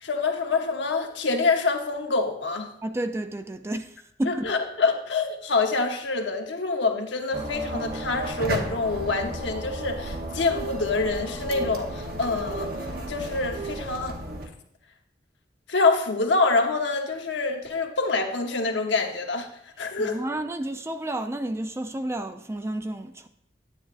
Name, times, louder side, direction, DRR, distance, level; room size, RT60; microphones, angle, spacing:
voice 1, 0.0-2.7 4.2-12.7 13.1-14.2 15.7-19.5 19.8-20.2, left 3 dB, 80° left, 1.0 m, -26 dB
voice 2, 2.8-4.5 20.0-23.3, right 1 dB, 15° right, 0.3 m, -31 dB
sound 1, 7.3-14.5, right 1 dB, 55° right, 1.0 m, -33 dB
9.9 x 8.6 x 2.5 m
head